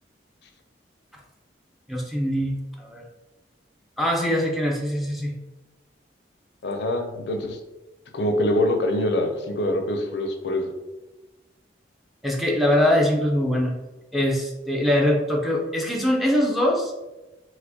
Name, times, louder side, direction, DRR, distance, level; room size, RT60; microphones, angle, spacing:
voice 1, 1.9-3.0 4.0-5.3 12.2-13.7 14.1-16.9, left 1 dB, ahead, -2 dB, 0.4 m, -22 dB
voice 2, 6.6-7.6 8.1-10.7, left 1 dB, 65° left, 4 dB, 0.4 m, -24 dB
4.4 x 2.1 x 2.7 m, 1.1 s
head